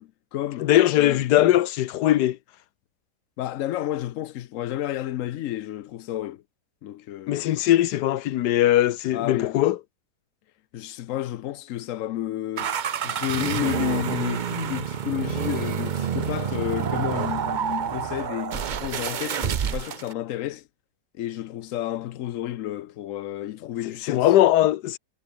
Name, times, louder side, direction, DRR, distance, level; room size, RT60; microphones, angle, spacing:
voice 1, 0.0-1.2 3.4-6.4 6.8-7.6 9.1-9.6 10.7-12.8 13.0-20.6 21.1-24.3, left 13 dB, 65° left, 0.9 m, -31 dB
voice 2, 0.6-2.4 7.3-9.8 24.0-25.0, left 13 dB, 85° left, 1.3 m, -20 dB
sound 1, 12.6-20.1, right 8 dB, 90° right, 0.4 m, -28 dB
omnidirectional pair, 1.7 m